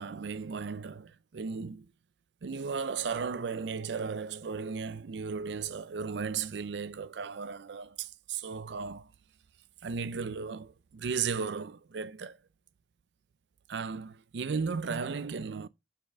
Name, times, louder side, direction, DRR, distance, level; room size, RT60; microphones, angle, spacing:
voice 1, 0.0-1.9 2.4-9.1 9.8-12.4 13.7-15.7, right 5 dB, 85° right, 0.5 m, -35 dB
8.0 x 4.5 x 3.4 m
head